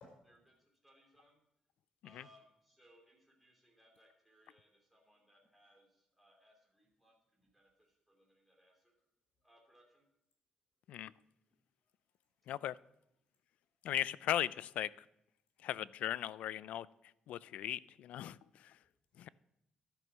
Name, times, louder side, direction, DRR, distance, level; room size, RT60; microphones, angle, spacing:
voice 1, 0.3-1.4 2.0-9.0 9.4-10.0 19.2-19.3, equal, 5° right, -1 dB, 2.9 m, -68 dB
voice 2, 5.4-5.7 7.0-7.1 7.4-7.5 10.8-11.2 11.5-12.4 18.5-18.9, left 3 dB, 60° left, -1 dB, 4.6 m, -66 dB
voice 3, 13.8-14.9 15.6-16.9 17.3-18.4 19.2-19.3, left 12 dB, 80° left, 19 dB, 0.3 m, -37 dB
12.0 x 6.2 x 6.0 m, 0.81 s
cardioid pair, 155°, 2 cm